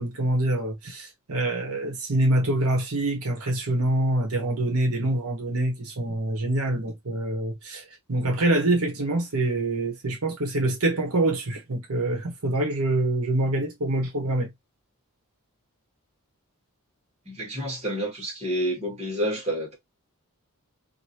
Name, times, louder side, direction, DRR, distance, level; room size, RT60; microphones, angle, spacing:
voice 1, 0.0-7.8 8.1-14.5, right 1 dB, 75° right, 1.1 m, -25 dB
voice 2, 17.3-19.8, equal, 30° right, 1.6 m, -29 dB
2.9 x 2.6 x 2.8 m
head